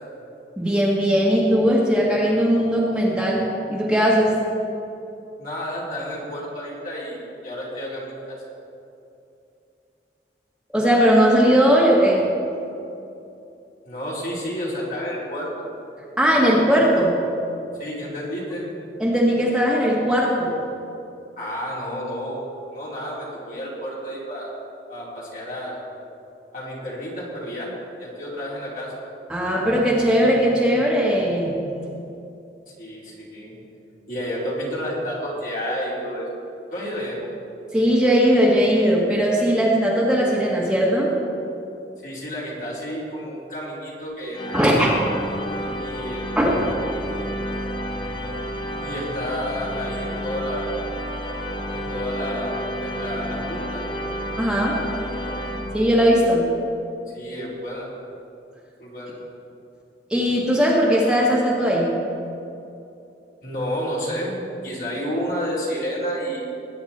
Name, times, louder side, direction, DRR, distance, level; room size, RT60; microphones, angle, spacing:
voice 1, 0.6-4.3 10.7-12.3 16.2-17.2 19.0-20.6 29.3-31.6 37.7-41.1 44.5-44.9 46.4-46.5 54.4-54.8 55.7-56.4 60.1-61.9, equal, 5° right, -5 dB, 1.8 m, -19 dB
voice 2, 5.4-8.5 13.8-15.7 17.8-18.7 21.4-22.4 22.7-24.6 24.9-25.8 26.5-27.7 28.0-28.9 32.8-33.5 34.1-36.3 36.7-37.2 42.0-45.0 45.8-46.3 48.8-50.7 51.7-53.9 57.1-57.9 58.8-59.2 63.4-66.4, equal, 50° left, -6 dB, 3.9 m, -30 dB
sound 1, 44.3-56.3, equal, 25° left, 0.8 m, -30 dB
20.5 x 9.6 x 4.4 m, 2.7 s
head